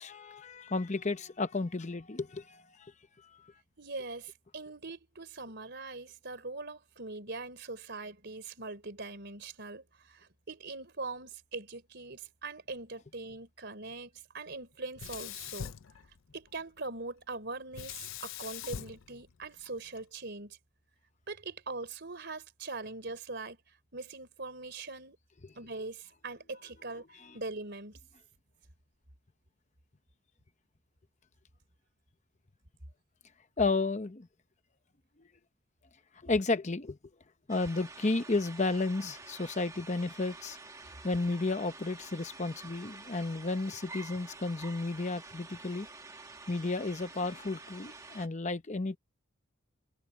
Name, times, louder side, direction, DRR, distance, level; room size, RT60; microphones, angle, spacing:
voice 1, 0.0-3.5 25.4-25.5 27.2-27.4 33.6-34.3 36.2-37.0 37.5-40.6 41.0-45.9 46.5-49.0, left 3 dB, 35° left, 0.8 m, -33 dB
voice 2, 3.8-15.7 16.3-20.6 21.3-23.6 23.9-25.2 25.6-28.0, right 3 dB, 55° right, 3.8 m, -42 dB
Sink (filling or washing), 15.0-16.6 17.7-20.0, left 9 dB, 70° left, 0.5 m, -43 dB
sound 1, 37.5-48.3, right 3 dB, 15° right, 1.2 m, -49 dB
head